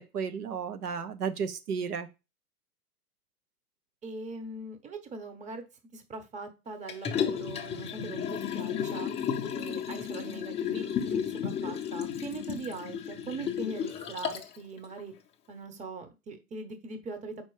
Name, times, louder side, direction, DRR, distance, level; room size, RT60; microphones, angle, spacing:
voice 1, 0.0-2.1, right 6 dB, 75° right, 9 dB, 1.0 m, -33 dB
voice 2, 4.0-5.6 5.9-9.1 9.5-15.1 15.5-17.4, right 3 dB, 15° right, 7 dB, 0.9 m, -41 dB
Liquid, 6.9-14.6 15.0-15.1, left 8 dB, 15° left, 0.6 m, -33 dB
4.5 x 4.4 x 4.8 m, 0.27 s
hypercardioid pair, 110°, 46 cm